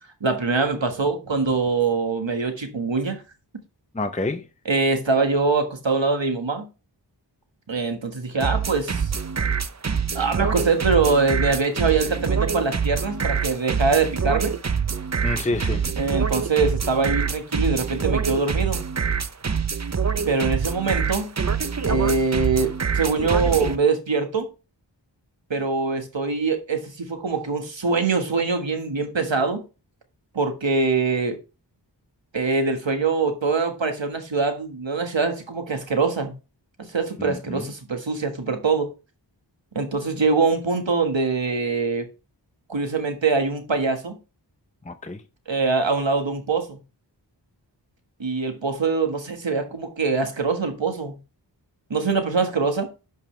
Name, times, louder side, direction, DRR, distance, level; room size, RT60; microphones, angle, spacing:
voice 1, 0.2-3.2 4.6-6.7 7.7-9.1 10.1-14.5 16.0-18.8 20.3-21.3 21.9-24.5 25.5-29.6 30.3-31.4 32.3-36.3 36.9-38.9 39.7-42.1 42.7-44.1 45.5-46.8 48.2-51.2 51.9-52.9, right 4 dB, 85° right, 1.5 m, -23 dB
voice 2, 3.9-4.4 15.2-15.9 37.2-37.7 44.9-45.2, left 2 dB, 15° left, 0.7 m, -28 dB
sound 1, 8.4-23.8, right 6 dB, 40° right, 0.7 m, -25 dB
11.0 x 5.4 x 3.2 m
wide cardioid pair, 40°, 44 cm